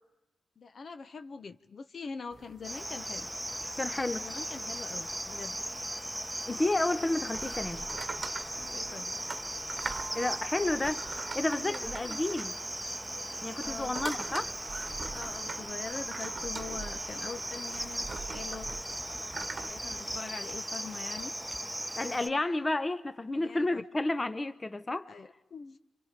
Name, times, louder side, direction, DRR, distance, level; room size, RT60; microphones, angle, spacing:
voice 1, 0.6-3.3 4.1-5.6 8.5-9.1 11.6-12.2 13.6-14.0 15.1-18.7 19.7-21.3 23.3-23.8 25.1-25.8, left 5 dB, 60° left, 1.0 m, -43 dB
sound 1, 2.3-19.7, right 4 dB, 45° right, 1.1 m, -44 dB
Cricket, 2.6-22.3, right 1 dB, 5° right, 1.0 m, -38 dB
voice 2, 3.8-4.3 6.5-7.9 10.1-11.0 11.3-12.5 13.4-14.5 22.0-25.1, left 2 dB, 25° left, 0.9 m, -31 dB
28.5 x 25.5 x 5.2 m
cardioid pair, 60°, 0 cm